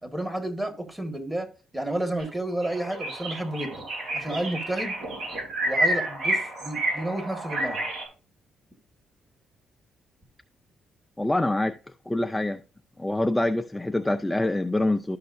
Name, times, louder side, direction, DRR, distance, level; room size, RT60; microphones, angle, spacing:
voice 1, 0.0-1.5 1.7-3.9 4.1-4.9 5.7-7.8, right 1 dB, 10° right, 1.7 m, -31 dB
sound 1, 2.2-2.3 2.6-8.0, right 1 dB, 70° right, 3.5 m, -29 dB
voice 2, 11.2-11.7 12.1-12.6 13.0-15.2, left 1 dB, 10° left, 0.4 m, -25 dB
12.0 x 5.7 x 2.6 m
cardioid pair, 90°, 0 cm